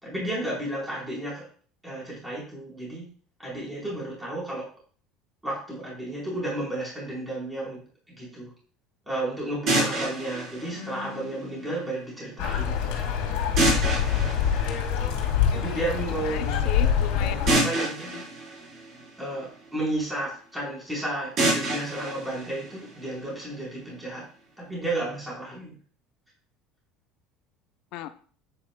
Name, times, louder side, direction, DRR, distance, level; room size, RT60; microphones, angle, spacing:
voice 1, 0.0-1.5 1.8-3.1 3.4-4.7 5.4-7.8 8.1-8.5 9.1-13.1 15.5-16.9 17.5-18.1 19.2-24.2 24.6-25.7, right 1 dB, 5° right, -5 dB, 4.1 m, -32 dB
sound 1, 9.7-11.7 13.6-15.5 17.5-19.7 21.4-23.4, right 2 dB, 35° right, 4.2 m, -28 dB
voice 2, 10.7-11.7 15.5-15.9 16.1-18.2 27.9-28.1, left 11 dB, 55° left, 10 dB, 0.7 m, -38 dB
sound 2, 12.4-17.5, left 8 dB, 85° left, 2.2 m, -25 dB
9.7 x 8.8 x 2.3 m, 0.43 s
cardioid pair, 170°, 0 cm